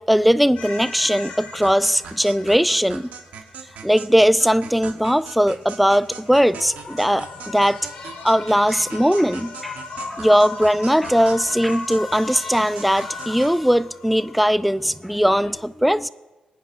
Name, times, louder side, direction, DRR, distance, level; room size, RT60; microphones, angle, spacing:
voice 1, 0.0-3.1 3.8-7.8 8.2-9.8 10.1-16.1, equal, ahead, 0.4 m, -19 dB
sound 1, 0.5-3.8 6.1-15.5, left 4 dB, 85° left, 3.1 m, -37 dB
sound 2, 1.6-13.6, right 7 dB, 90° right, 1.0 m, -40 dB
25.5 x 9.3 x 2.5 m
cardioid pair, 90°, 3 cm